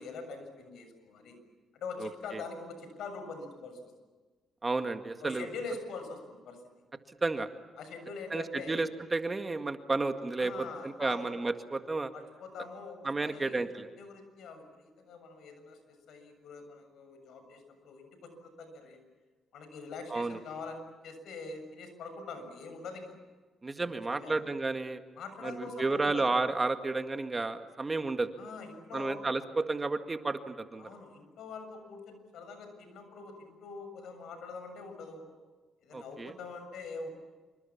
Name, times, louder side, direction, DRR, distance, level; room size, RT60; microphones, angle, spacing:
voice 1, 0.0-1.4 1.7-3.9 5.2-6.6 7.8-8.9 10.4-11.3 12.1-19.0 19.5-23.2 23.8-24.4 25.2-26.3 28.4-29.2 30.8-35.3 35.8-37.1, left 4 dB, 75° left, 7 dB, 7.0 m, -44 dB
voice 2, 2.0-2.4 4.6-5.5 7.2-7.5 8.3-12.1 13.0-13.9 20.1-20.4 23.6-25.0 25.4-28.3 28.9-30.9 35.9-36.3, right 3 dB, 25° right, 8 dB, 1.9 m, -32 dB
27.0 x 25.0 x 7.3 m, 1.4 s
cardioid pair, 90°, 0 cm